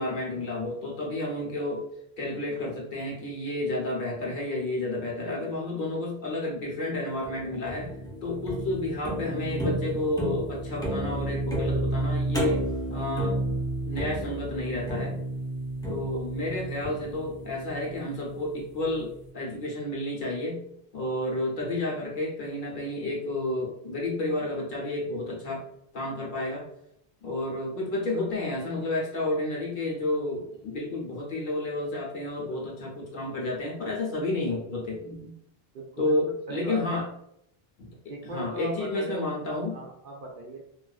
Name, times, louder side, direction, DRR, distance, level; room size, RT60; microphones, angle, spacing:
voice 1, 0.0-1.9 2.2-7.9 8.2-12.6 12.9-13.6 13.9-15.2 15.8-20.6 20.9-25.6 25.9-26.7 27.2-35.3 36.0-37.0 37.8-37.9 38.2-39.8, left 2 dB, 60° left, -3 dB, 0.7 m, -31 dB
sound 1, 7.2-18.4, right 1 dB, 5° left, 0.3 m, -31 dB
voice 2, 35.7-37.1 38.1-39.3 39.7-40.6, right 2 dB, 60° right, -1 dB, 0.7 m, -38 dB
2.4 x 2.3 x 2.2 m, 0.76 s
omnidirectional pair, 1.0 m